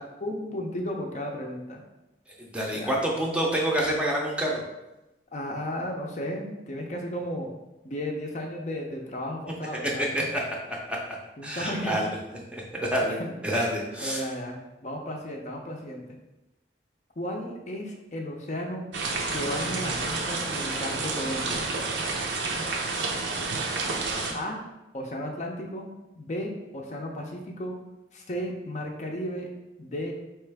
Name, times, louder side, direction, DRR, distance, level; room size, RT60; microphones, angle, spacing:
voice 1, 0.0-1.8 2.7-2.9 5.3-7.5 7.8-10.3 11.4-12.0 13.0-13.4 14.0-16.2 17.2-18.9 19.3-21.7 24.3-24.6 24.9-25.9 26.2-27.8 28.1-29.5 29.8-30.1, equal, 40° left, 1 dB, 0.6 m, -34 dB
voice 2, 2.5-4.6 10.1-10.4 10.7-11.0 11.4-12.1 12.5-13.2 13.4-14.2, right 1 dB, 5° right, -2 dB, 0.6 m, -27 dB
sound 1, 18.9-24.3, right 3 dB, 80° right, 0.7 m, -30 dB
4.7 x 3.1 x 3.4 m, 0.97 s
head